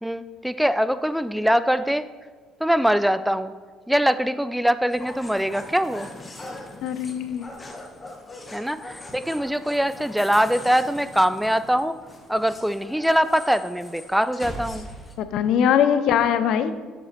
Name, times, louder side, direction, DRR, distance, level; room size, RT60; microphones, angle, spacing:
voice 1, 0.0-2.0 2.6-3.5 3.9-6.1 8.5-11.9 12.3-14.9, equal, 5° right, 13 dB, 0.3 m, -22 dB
sound 1, 4.9-15.1, left 1 dB, 25° left, 1.1 m, -41 dB
voice 2, 6.8-7.5 15.2-16.7, left 8 dB, 65° left, 11 dB, 0.4 m, -21 dB
7.1 x 6.9 x 3.0 m, 1.4 s
hypercardioid pair, 55°, 0 cm